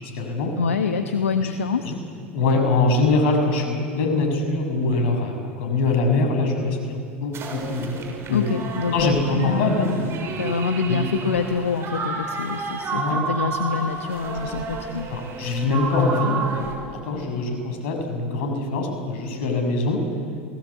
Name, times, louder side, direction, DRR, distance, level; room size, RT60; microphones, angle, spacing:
voice 1, 0.0-0.5 1.4-1.5 1.8-2.0 2.3-8.4 8.9-10.2 10.9-11.0 12.9-13.2 14.4-14.5 15.1-16.6 16.9-20.0, left 3 dB, 65° left, 4 dB, 6.7 m, -23 dB
voice 2, 0.6-1.9 8.3-10.0 10.4-15.1, left 5 dB, 85° left, 7 dB, 1.2 m, -26 dB
sound 1, 7.3-16.7, right 4 dB, 40° right, 6.3 m, -31 dB
29.5 x 20.0 x 8.5 m, 2.3 s
hypercardioid pair, 80°, 7 cm